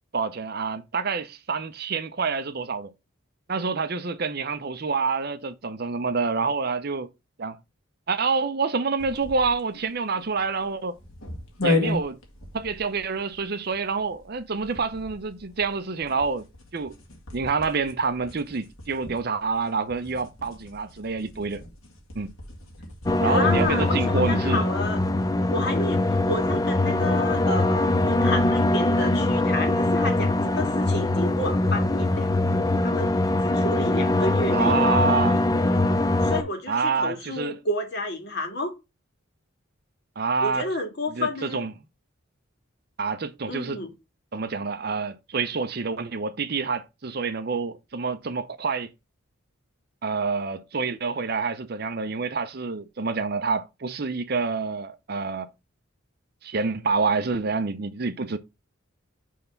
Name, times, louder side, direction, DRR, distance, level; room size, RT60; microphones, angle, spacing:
voice 1, 0.1-2.9 3.5-7.1 7.4-7.6 8.1-11.0 11.6-12.2 12.5-16.5 16.7-16.9 17.3-21.6 22.2-22.3 23.2-24.7 34.5-35.4 36.7-37.6 40.2-40.7 41.1-41.7 43.0-43.8 44.3-48.9 50.0-55.5 56.4-58.4, right 4 dB, 50° right, 0.6 m, -27 dB
sound 1, 9.0-23.9, left 3 dB, 85° left, 2.1 m, -35 dB
sound 2, 23.1-36.4, left 2 dB, 15° left, 0.4 m, -22 dB
voice 2, 23.2-25.0 25.5-32.3 32.8-34.8 36.2-38.7 40.4-41.6 43.5-43.9, left 1 dB, 50° left, 2.0 m, -30 dB
6.4 x 3.4 x 5.5 m
head